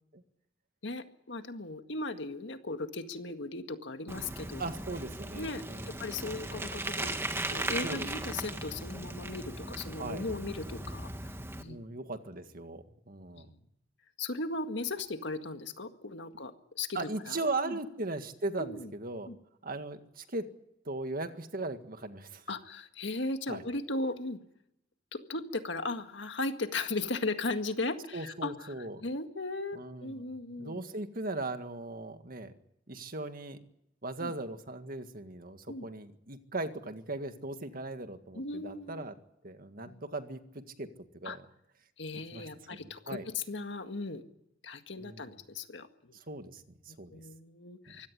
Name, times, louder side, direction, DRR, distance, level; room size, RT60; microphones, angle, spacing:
voice 1, 0.8-4.6 5.4-7.2 7.4-11.1 11.6-11.8 13.4-13.6 14.2-17.8 18.6-18.9 19.3-19.4 22.5-24.4 25.1-28.7 29.0-30.8 34.2-34.3 35.7-35.9 38.3-39.1 39.9-40.0 41.2-41.4 42.0-44.2 44.6-46.2 46.9-48.1, left 2 dB, 70° left, 7 dB, 1.9 m, -37 dB
Bicycle, 4.1-11.6, right 2 dB, 15° right, 1.7 m, -38 dB
voice 2, 4.6-6.1 7.8-8.1 10.0-10.3 11.7-13.5 16.9-19.3 19.6-20.4 20.9-22.4 23.5-23.6 28.1-29.0 29.7-30.2 30.5-32.5 32.9-33.6 34.0-39.2 39.4-40.4 40.8-40.9 41.2-41.4 42.3-42.4 42.7-42.8 43.1-43.2 45.0-45.3 46.3-47.2, right 2 dB, 50° right, 8 dB, 1.9 m, -38 dB
24.5 x 16.5 x 10.0 m, 0.80 s
head